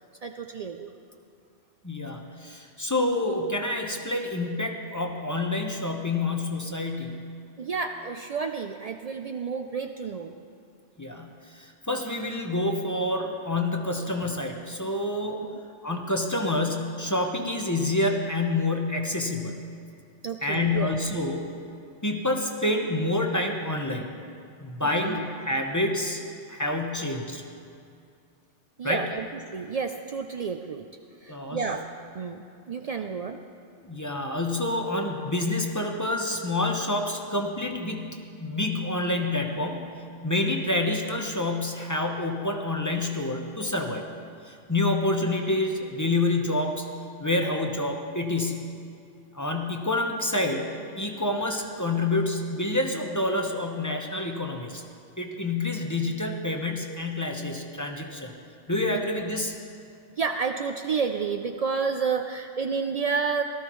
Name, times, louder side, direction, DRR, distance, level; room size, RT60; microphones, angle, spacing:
voice 1, 0.2-0.9 7.6-10.3 20.2-20.9 24.8-25.2 28.8-30.9 31.2-31.8 32.1-33.4 58.9-59.0 60.2-63.4, right 5 dB, 85° right, 4 dB, 0.3 m, -30 dB
voice 2, 1.8-7.3 11.0-15.4 15.8-19.6 20.4-21.6 22.0-24.1 24.6-26.2 26.5-27.4 28.8-29.1 31.3-31.7 33.8-40.0 40.2-44.1 44.4-46.9 47.2-48.7 49.3-54.8 55.2-58.3 58.7-59.5, left 2 dB, 15° left, 2 dB, 0.8 m, -28 dB
17.5 x 13.5 x 3.1 m, 2.4 s
omnidirectional pair, 1.2 m